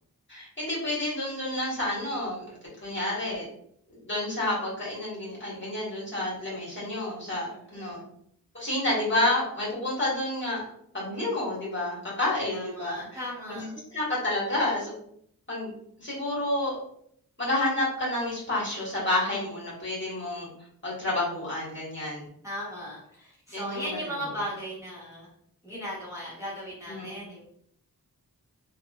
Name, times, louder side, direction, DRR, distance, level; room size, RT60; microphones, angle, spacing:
voice 1, 0.3-2.4 2.8-3.4 4.0-8.0 8.5-10.6 10.9-13.0 13.5-14.9 15.5-15.7 16.0-16.8 17.4-20.5 20.8-22.3 23.5-23.9 26.9-27.1, left 1 dB, 30° left, -7 dB, 1.4 m, -29 dB
voice 2, 7.5-8.0 12.5-13.7 22.4-25.3 25.6-27.4, equal, 10° right, -8 dB, 1.1 m, -37 dB
3.4 x 2.2 x 2.4 m, 0.68 s
wide cardioid pair, 85°, 36 cm